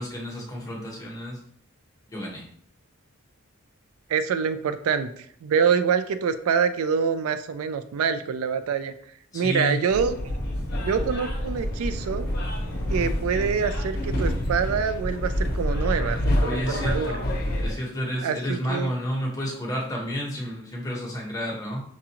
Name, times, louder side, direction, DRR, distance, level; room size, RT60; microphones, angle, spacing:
voice 1, 0.0-1.4 2.1-2.4 9.3-9.8 16.4-17.2 17.6-21.8, equal, 15° left, -3 dB, 1.0 m, -30 dB
voice 2, 4.1-8.9 9.3-10.2 10.8-12.3 12.9-17.1 18.2-18.9, right 6 dB, 80° right, 11 dB, 0.3 m, -26 dB
sound 1, 9.9-17.7, left 1 dB, 45° left, 0.8 m, -27 dB
5.8 x 2.4 x 2.9 m, 0.62 s
head